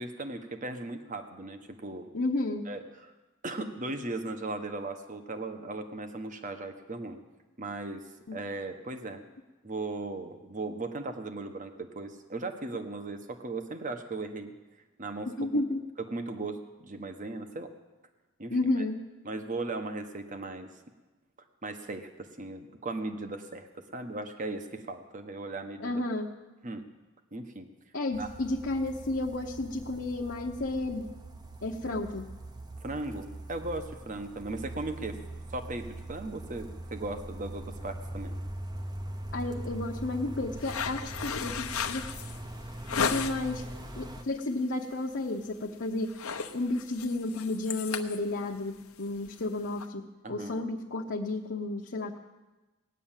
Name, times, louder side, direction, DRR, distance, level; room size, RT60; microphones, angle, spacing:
voice 1, 0.0-2.1 2.7-3.1 3.4-7.2 7.6-8.0 8.3-9.2 9.6-14.5 15.0-15.3 16.1-17.7 18.4-18.5 19.2-20.7 21.6-26.0 26.6-26.8 27.3-27.7 28.2-28.3 32.8-35.2 35.5-38.4 50.2-50.6, right 2 dB, 35° right, 7 dB, 1.2 m, -37 dB
voice 2, 2.1-2.7 8.3-8.4 15.3-15.8 18.5-19.0 25.8-26.3 27.9-31.1 31.6-32.2 39.3-42.0 42.9-43.6 44.0-46.1 46.5-52.2, left 2 dB, 55° left, -1 dB, 0.9 m, -32 dB
sound 1, 28.1-44.2, right 1 dB, 20° right, 0.8 m, -42 dB
sound 2, 40.6-43.6 44.0-44.4 44.7-44.9 45.3-45.7 45.9-49.9, left 6 dB, 80° left, 0.9 m, -35 dB
17.5 x 9.9 x 7.4 m, 1.2 s
head